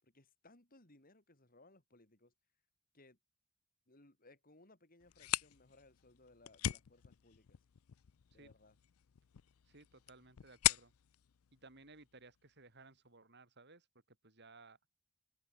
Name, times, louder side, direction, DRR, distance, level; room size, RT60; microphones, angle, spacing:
voice 1, 0.0-2.3 2.9-3.2 3.9-7.6 8.3-8.8, left 2 dB, 40° left, 3.9 m, -64 dB
sound 1, 5.0-12.5, left 14 dB, 80° left, 0.5 m, -41 dB
voice 2, 9.7-10.9 11.5-14.8, right 3 dB, 50° right, 5.5 m, -60 dB
open air
head